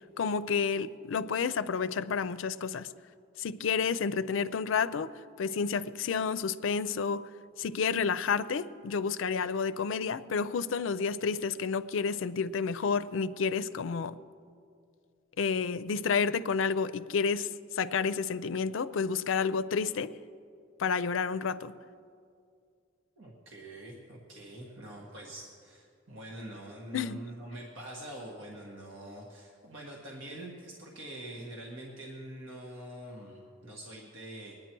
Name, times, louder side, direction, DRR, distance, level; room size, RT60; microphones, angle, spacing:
voice 1, 0.2-2.9 3.4-5.1 5.4-7.3 7.6-14.2 15.4-20.2 20.8-21.7 26.9-27.2, left 5 dB, 75° left, 0.4 m, -30 dB
voice 2, 23.2-34.5, right 1 dB, 80° right, 1.7 m, -45 dB
21.5 x 9.8 x 4.5 m
head